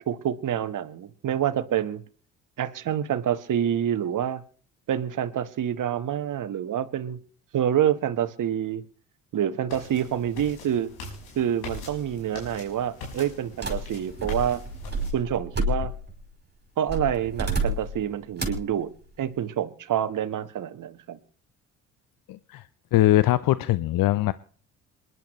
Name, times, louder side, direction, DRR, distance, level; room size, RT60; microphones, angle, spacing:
voice 1, 0.1-2.0 2.6-4.4 4.9-7.2 7.5-8.8 9.3-10.9 11.3-14.6 15.1-15.9 16.8-18.9 19.2-21.2, right 10 dB, 50° right, 1.4 m, -27 dB
sound 1, 9.7-15.1, left 3 dB, 75° left, 5.8 m, -42 dB
sound 2, 13.6-16.2 16.9-18.0 18.4-18.7, right 1 dB, 25° right, 5.4 m, -30 dB
voice 2, 22.3-22.6 22.9-24.3, left 15 dB, 60° left, 0.7 m, -21 dB
27.0 x 11.0 x 3.1 m
hypercardioid pair, 50°, 39 cm